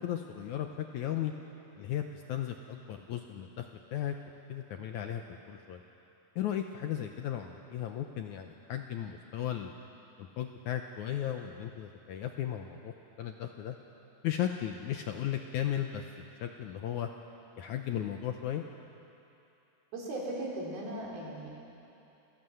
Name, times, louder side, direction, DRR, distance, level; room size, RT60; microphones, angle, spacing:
voice 1, 0.0-1.3 1.8-2.0 2.3-4.2 4.5-5.2 5.5-5.8 6.4-9.7 10.2-13.8 14.2-16.0 16.4-17.1 17.6-18.7, left 11 dB, 75° left, 5 dB, 1.8 m, -35 dB
voice 2, 19.9-21.5, right 1 dB, 80° right, -4 dB, 6.0 m, -37 dB
28.0 x 17.0 x 7.8 m, 2.8 s
omnidirectional pair, 4.3 m